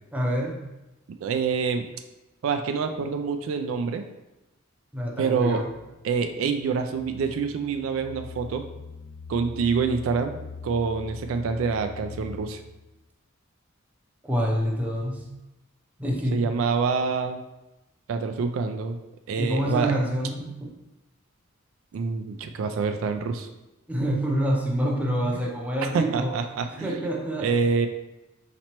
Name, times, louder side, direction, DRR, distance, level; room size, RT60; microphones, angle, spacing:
voice 1, 0.1-0.6 4.9-5.7 14.2-15.2 16.0-16.4 19.4-20.7 23.9-26.4 26.8-27.5, equal, 5° right, -1 dB, 0.5 m, -27 dB
voice 2, 1.1-1.9 2.4-4.0 5.2-5.6 6.0-8.7 9.3-12.6 16.3-17.4 18.1-19.0 19.3-19.9 21.9-23.5 25.9-27.0 27.4-27.9, right 5 dB, 70° right, 7 dB, 0.3 m, -26 dB
sound 1, 5.5-13.0, left 4 dB, 50° left, 0.4 m, -43 dB
4.2 x 2.9 x 2.9 m, 0.99 s
head